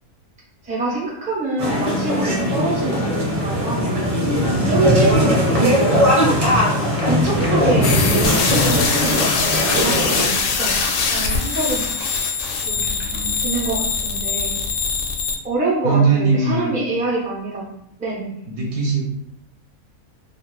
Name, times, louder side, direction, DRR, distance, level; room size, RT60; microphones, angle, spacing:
voice 1, 0.6-4.2 4.6-6.4 7.1-9.2 9.5-12.3 12.7-12.9 13.4-14.7 15.4-18.4, right 2 dB, 10° right, -6 dB, 0.4 m, -26 dB
sound 1, 1.6-10.3, equal, 30° right, 0.8 m, -19 dB
sound 2, 6.9-13.4, left 1 dB, 40° left, 0.6 m, -36 dB
sound 3, 7.8-15.4, left 5 dB, 70° left, 0.9 m, -22 dB
voice 2, 12.7-13.4 15.8-16.8 18.5-19.1, right 4 dB, 60° right, -3 dB, 0.9 m, -20 dB
2.5 x 2.4 x 3.1 m, 0.77 s
omnidirectional pair, 1.5 m